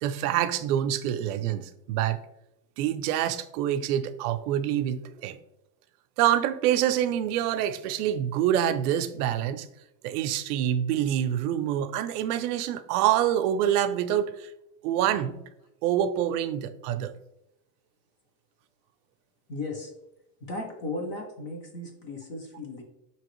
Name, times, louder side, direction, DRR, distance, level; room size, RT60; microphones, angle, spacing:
voice 1, 0.0-2.2 2.8-5.4 6.2-9.7 10.0-14.5 14.8-15.4 15.8-17.1, right 11 dB, 90° right, 11 dB, 0.5 m, -26 dB
voice 2, 19.5-19.9 20.4-22.8, left 2 dB, 30° left, 3 dB, 0.4 m, -36 dB
4.9 x 2.9 x 3.0 m, 0.85 s
cardioid pair, 165°, 45 cm